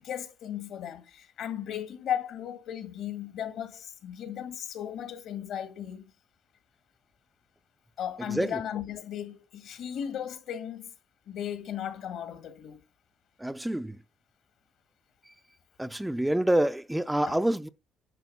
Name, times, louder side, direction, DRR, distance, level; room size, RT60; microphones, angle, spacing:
voice 1, 0.0-6.1 8.0-10.9 11.3-12.8 17.3-17.4, left 9 dB, 70° left, 2.0 m, -36 dB
voice 2, 8.3-8.6 13.4-14.0 15.8-17.7, right 1 dB, 5° right, 0.5 m, -27 dB
10.5 x 6.4 x 5.6 m
cardioid pair, 110°, 0 cm